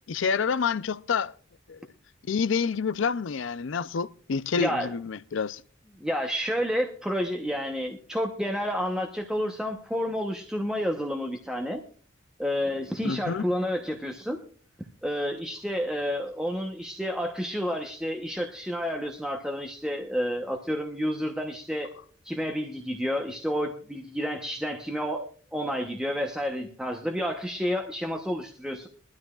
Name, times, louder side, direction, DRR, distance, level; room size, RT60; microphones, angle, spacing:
voice 1, 0.1-1.3 1.7-1.9 2.3-5.6 13.0-13.4, left 5 dB, 75° left, 0.5 m, -28 dB
voice 2, 4.6-4.9 6.0-11.8 12.4-14.4 15.0-21.9 22.2-28.9, equal, 5° right, 0.9 m, -30 dB
21.5 x 13.0 x 2.4 m
head